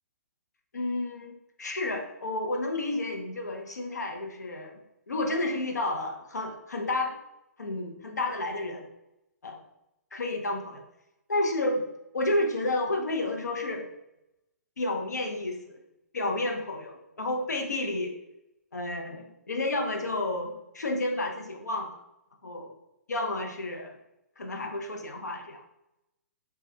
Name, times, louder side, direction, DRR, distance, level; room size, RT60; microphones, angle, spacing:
voice 1, 0.7-4.8 5.1-7.1 7.6-8.9 9.4-9.6 10.1-10.8 11.3-11.8 12.1-13.9 14.8-15.7 16.1-18.1 18.7-22.0 22.4-22.7 23.1-24.0 24.4-25.6, left 2 dB, 85° left, 2 dB, 0.6 m, -31 dB
3.3 x 2.2 x 2.7 m, 0.87 s
hypercardioid pair, 130°, 9 cm